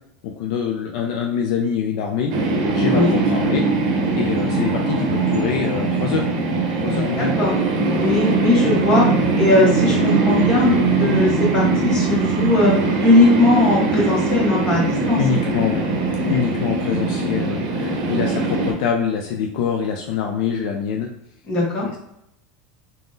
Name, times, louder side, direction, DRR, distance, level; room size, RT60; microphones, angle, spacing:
voice 1, 0.2-2.3 2.7-6.3 6.8-7.4 15.2-15.9 16.2-21.1 21.8-22.0, left 7 dB, 60° left, 2 dB, 0.3 m, -25 dB
sound 1, 2.3-18.7, right 3 dB, 60° right, 0.7 m, -21 dB
voice 2, 7.2-7.5 8.0-9.1 9.3-12.7 13.0-15.2 21.5-21.9, left 2 dB, 25° left, -4 dB, 1.0 m, -18 dB
3.4 x 2.2 x 2.6 m, 0.80 s
supercardioid pair, 165°, 4 cm